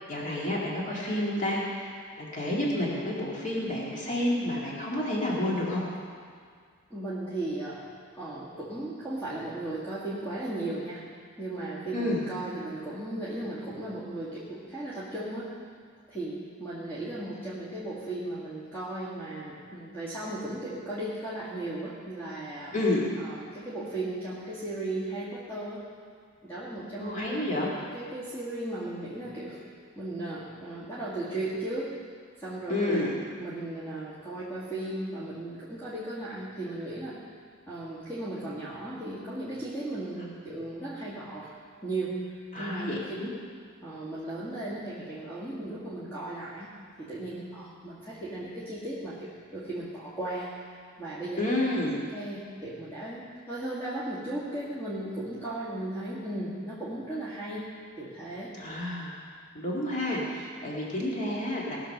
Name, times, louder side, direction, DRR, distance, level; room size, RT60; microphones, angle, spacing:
voice 1, 0.1-1.9 2.2-5.8 11.9-12.2 22.7-23.0 27.0-27.7 32.7-33.2 42.5-43.3 51.4-52.0 58.5-59.1 59.5-61.8, left 1 dB, 35° left, -5 dB, 2.2 m, -29 dB
voice 2, 6.9-7.8 8.1-11.0 11.4-15.5 16.1-22.8 23.2-25.8 26.4-27.4 27.9-29.6 30.0-31.9 32.4-33.1 33.4-37.2 37.7-41.5 41.8-42.2 42.6-43.2 43.8-46.7 47.0-50.5 51.0-51.4 52.1-57.7 58.0-58.5, right 1 dB, 10° left, -9 dB, 2.1 m, -36 dB
18.5 x 6.8 x 6.6 m, 2.1 s
head